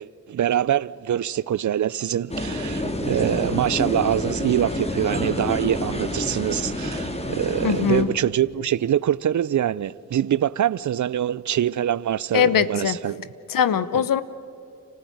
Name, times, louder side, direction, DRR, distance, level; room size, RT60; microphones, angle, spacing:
voice 1, 0.0-13.3 13.9-14.0, right 10 dB, 60° right, 0.6 m, -24 dB
sound 1, 2.3-8.0, left 1 dB, 20° left, 3.2 m, -28 dB
voice 2, 7.6-8.1 12.3-13.0 13.5-14.2, left 9 dB, 80° left, 1.0 m, -21 dB
30.0 x 14.5 x 9.3 m
cardioid pair, 55°, 33 cm